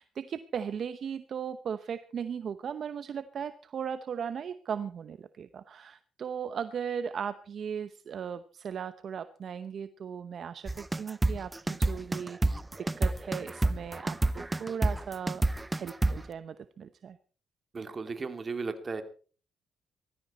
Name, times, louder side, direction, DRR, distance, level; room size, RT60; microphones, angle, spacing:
voice 1, 0.0-11.5 11.8-15.4 15.7-17.2, right 7 dB, 55° right, 12 dB, 0.8 m, -37 dB
sound 1, 10.7-16.3, right 2 dB, 15° right, 0.7 m, -29 dB
voice 2, 17.7-19.0, right 4 dB, 35° right, 8 dB, 2.7 m, -35 dB
19.0 x 14.5 x 4.2 m, 0.40 s
cardioid pair, 90°, 0 cm